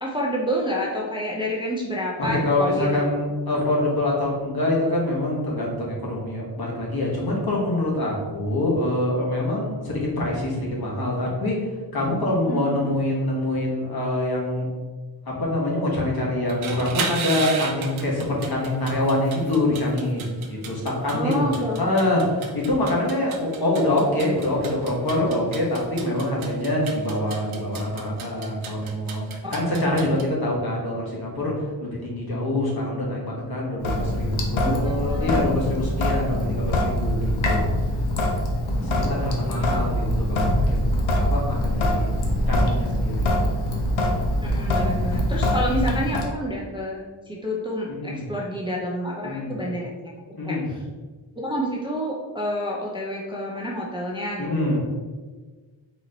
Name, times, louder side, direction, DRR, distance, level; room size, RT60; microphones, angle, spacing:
voice 1, 0.0-3.0 12.5-12.8 21.1-22.4 30.1-30.2 34.8-35.5 38.7-39.8 44.4-50.1 50.4-50.8 51.4-54.8, equal, 10° right, -3 dB, 0.4 m, -29 dB
voice 2, 2.2-11.6 11.9-14.7 15.3-21.5 21.8-31.5 31.8-37.7 38.7-40.9 41.3-42.1 42.5-43.4 47.9-48.2 49.2-49.5 50.3-50.7 54.4-54.8, left 1 dB, 50° left, -3 dB, 1.3 m, -25 dB
sound 1, 16.4-30.2, right 5 dB, 80° right, 0.7 m, -35 dB
Sink (filling or washing) / Drip, 33.8-46.3, left 1 dB, 75° left, 0.8 m, -23 dB
4.1 x 3.0 x 3.8 m, 1.4 s
wide cardioid pair, 155°, 47 cm